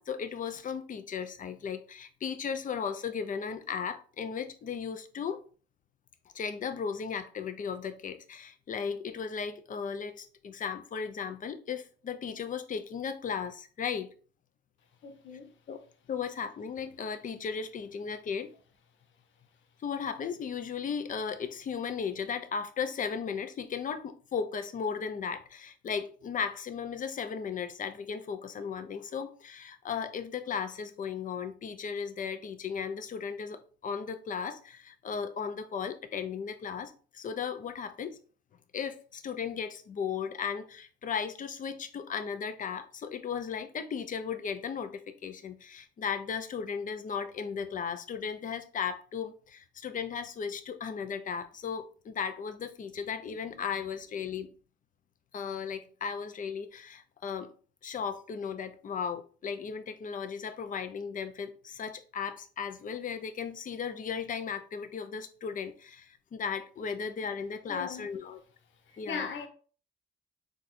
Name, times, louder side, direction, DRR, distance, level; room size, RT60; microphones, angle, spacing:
voice 1, 0.0-5.4 6.3-14.1 15.7-15.8 16.1-18.5 19.8-38.2 38.7-54.5 55.3-57.5 57.8-68.4 69.0-69.3, left 6 dB, 45° left, 0.5 m, -36 dB
voice 2, 15.0-15.5 67.7-68.1 68.9-69.5, left 5 dB, 70° left, 0.8 m, -38 dB
4.0 x 2.4 x 2.5 m
cardioid pair, 90°, 20 cm